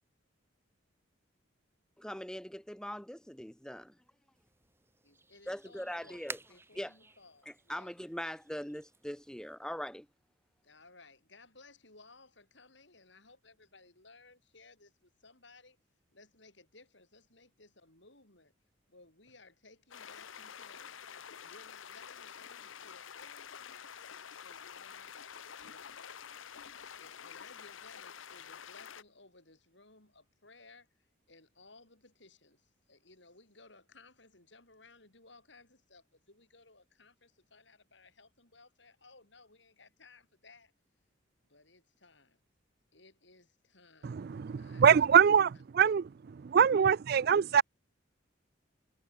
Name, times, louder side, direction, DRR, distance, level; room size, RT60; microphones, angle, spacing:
voice 1, 2.0-3.9 5.5-6.4 6.7-6.9 7.4-10.1, equal, 5° left, 1.5 m, -41 dB
sound 1, 4.3-9.6, right 3 dB, 10° right, 2.2 m, -52 dB
voice 2, 5.0-7.9 10.6-15.8 16.1-18.5 18.9-24.1 24.4-25.2 25.6-26.2 26.8-40.7 41.5-42.4 42.9-44.3 44.6-45.3, left 3 dB, 60° left, 7.6 m, -60 dB
sound 2, 19.9-29.0, left 8 dB, 80° left, 0.9 m, -48 dB
voice 3, 44.0-46.1 46.4-47.6, right 7 dB, 50° right, 0.3 m, -24 dB
head